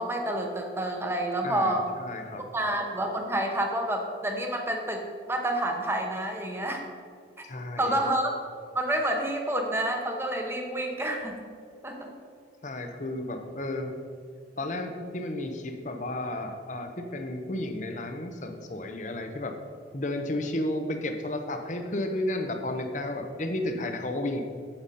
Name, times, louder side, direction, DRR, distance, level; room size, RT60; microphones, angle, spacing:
voice 1, 0.0-1.9 2.5-6.8 7.8-8.3 8.7-11.6 11.8-12.1, right 1 dB, 15° right, 2 dB, 0.9 m, -29 dB
voice 2, 1.4-2.5 7.4-8.0 12.6-14.0 14.6-19.6 19.9-24.4, left 1 dB, 40° left, 5 dB, 0.8 m, -33 dB
8.9 x 7.8 x 4.2 m, 2.2 s
head